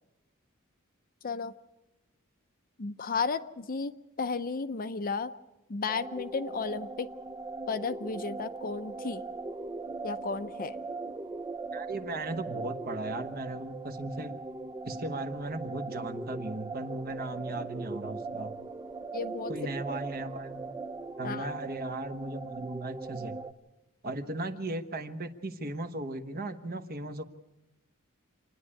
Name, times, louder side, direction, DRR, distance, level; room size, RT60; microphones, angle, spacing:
voice 1, 2.8-3.9 4.2-5.3 5.7-7.1 7.7-9.2 10.0-10.8 19.1-19.5 21.2-21.5, left 4 dB, 40° left, 11 dB, 0.7 m, -33 dB
sound 1, 5.9-23.5, right 3 dB, 15° right, 0.6 m, -40 dB
voice 2, 11.7-14.3 14.8-18.5 19.5-20.7 21.2-23.4 24.0-27.2, right 2 dB, 45° right, 7 dB, 1.2 m, -37 dB
27.0 x 10.0 x 9.7 m, 1.0 s
head